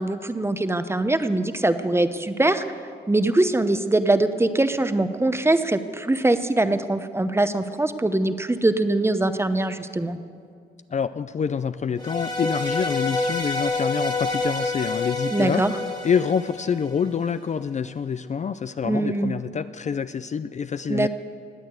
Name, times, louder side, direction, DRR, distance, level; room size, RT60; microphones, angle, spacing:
voice 1, 0.0-2.6 3.1-10.2 15.3-15.7 18.8-19.3 20.9-21.1, right 2 dB, 15° right, 10 dB, 0.8 m, -22 dB
voice 2, 10.9-15.6 16.0-21.1, left 7 dB, 40° left, 13 dB, 0.4 m, -26 dB
sound 1, 12.0-17.2, left 2 dB, 25° left, 2.1 m, -28 dB
19.0 x 8.8 x 8.0 m, 2.3 s
cardioid pair, 90°, 18 cm